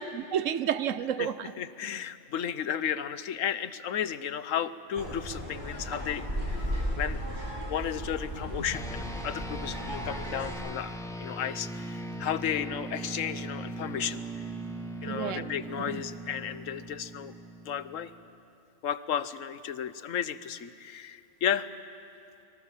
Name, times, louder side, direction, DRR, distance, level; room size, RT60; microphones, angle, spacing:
voice 1, 0.0-1.5 15.1-15.5 15.9-16.0, right 9 dB, 80° right, 1.2 m, -31 dB
voice 2, 1.2-7.2 7.7-10.9 11.2-14.4 15.0-17.4 17.6-18.1 18.8-21.7, left 9 dB, 90° left, 1.2 m, -33 dB
sound 1, 5.0-10.5, equal, 40° right, 6.2 m, -35 dB
sound 2, 8.7-18.4, right 1 dB, 5° left, 1.2 m, -40 dB
29.5 x 22.5 x 7.3 m
omnidirectional pair, 1.3 m